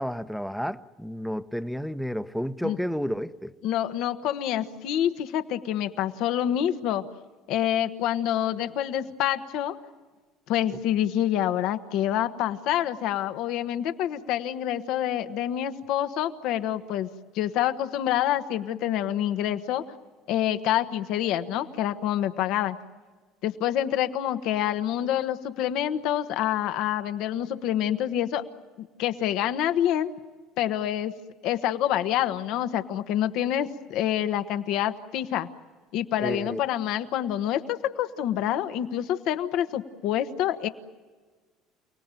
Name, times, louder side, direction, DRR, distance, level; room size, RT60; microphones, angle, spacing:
voice 1, 0.0-3.5 36.2-36.6, equal, ahead, 1.0 m, -31 dB
voice 2, 3.6-7.0 7.5-9.8 10.5-17.1 17.3-19.8 20.3-22.8 23.4-28.4 28.8-30.1 30.6-31.1 31.4-35.5 35.9-40.7, left 11 dB, 70° left, 1.4 m, -27 dB
29.5 x 18.5 x 9.1 m
supercardioid pair, 80°, 0 cm